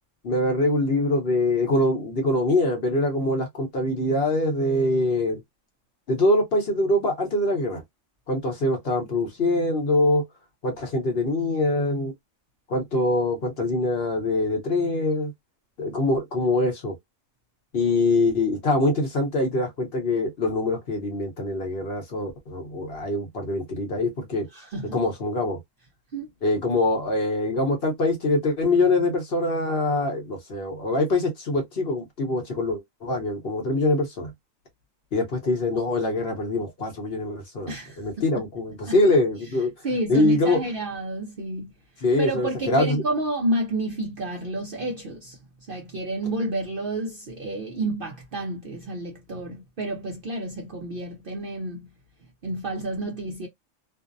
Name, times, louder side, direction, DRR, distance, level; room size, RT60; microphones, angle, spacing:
voice 1, 0.2-5.4 6.1-7.8 8.3-10.2 10.6-12.1 12.7-15.3 15.8-16.9 17.7-24.5 24.9-25.6 26.4-34.3 35.1-39.7 40.1-40.6 42.0-43.0, left 2 dB, 50° left, 0.9 m, -24 dB
voice 2, 24.5-25.0 26.1-26.3 37.7-38.3 38.9-39.0 39.8-41.7 42.2-45.4 45.7-51.9 52.4-53.5, right 2 dB, 55° right, 0.6 m, -30 dB
2.6 x 2.0 x 2.5 m
omnidirectional pair, 1.4 m